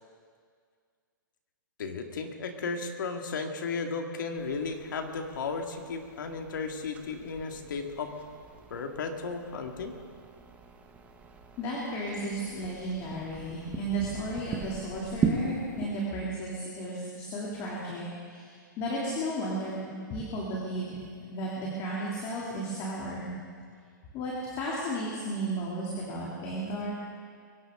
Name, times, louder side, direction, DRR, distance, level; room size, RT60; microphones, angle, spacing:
voice 1, 1.8-8.1 8.7-9.9, left 4 dB, 70° left, 4 dB, 2.1 m, -34 dB
sound 1, 4.4-15.9, right 5 dB, 15° right, 1.3 m, -38 dB
voice 2, 11.6-19.8 20.1-23.3 24.1-26.9, right 1 dB, 30° left, -5 dB, 2.9 m, -34 dB
23.0 x 16.5 x 3.8 m, 2.1 s
hypercardioid pair, 150°, 11 cm